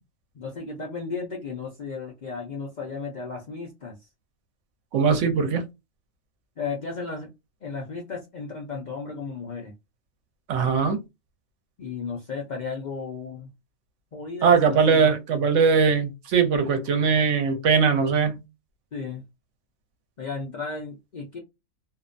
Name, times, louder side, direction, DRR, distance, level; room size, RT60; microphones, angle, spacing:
voice 1, 0.3-4.0 6.6-7.3 7.6-9.7 11.8-13.5 14.1-15.1 18.9-19.2 20.2-21.4, left 4 dB, 55° left, 0.5 m, -34 dB
voice 2, 4.9-5.6 10.5-11.0 14.4-18.4, right 5 dB, 70° right, 0.9 m, -20 dB
2.6 x 2.1 x 2.5 m
omnidirectional pair, 1.4 m